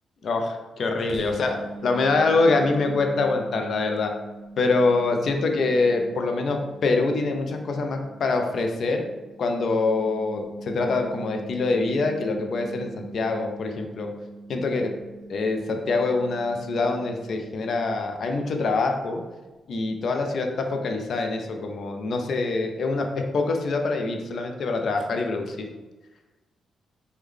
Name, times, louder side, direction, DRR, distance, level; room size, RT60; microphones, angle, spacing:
voice 1, 0.2-1.6 1.8-4.1 4.6-9.0 9.4-14.1 14.5-14.9 15.3-19.2 19.7-25.6, left 3 dB, 60° left, 4 dB, 0.4 m, -25 dB
sound 1, 1.1-18.6, right 2 dB, 60° right, 0.4 m, -43 dB
3.6 x 2.1 x 3.2 m, 1.2 s
cardioid pair, 105°, 0 cm